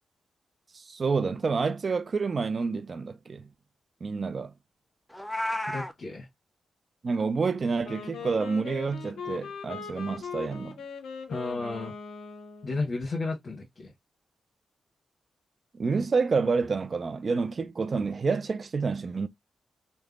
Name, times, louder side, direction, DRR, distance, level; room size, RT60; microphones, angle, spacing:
voice 1, 0.7-3.5 4.0-4.5 7.0-10.8 15.7-19.3, right 4 dB, 50° right, 0.4 m, -28 dB
Meow, 5.1-5.9, left 1 dB, 5° left, 0.5 m, -31 dB
voice 2, 5.7-6.3 11.3-11.9 12.6-13.9, left 3 dB, 50° left, 0.9 m, -33 dB
Wind instrument woodwind instrument, 7.8-12.8, left 6 dB, 80° left, 0.5 m, -40 dB
3.2 x 2.1 x 2.3 m
supercardioid pair, 45°, 0 cm